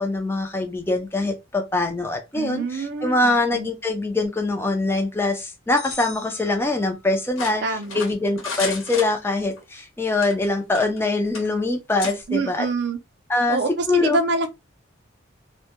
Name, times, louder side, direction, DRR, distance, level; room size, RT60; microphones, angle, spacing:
voice 1, 0.0-7.6 7.9-12.7 13.3-13.6 13.9-14.2, left 2 dB, 10° left, 0.4 m, -23 dB
voice 2, 2.3-3.7 7.6-8.0 12.3-13.0 13.5-14.5, right 3 dB, 55° right, 0.5 m, -26 dB
sound 1, 5.8-7.3, left 3 dB, 45° left, 0.9 m, -40 dB
sound 2, 7.4-9.6 10.1-11.1 11.3-11.5 12.0-12.2, left 5 dB, 85° left, 0.9 m, -32 dB
2.1 x 2.1 x 2.8 m
head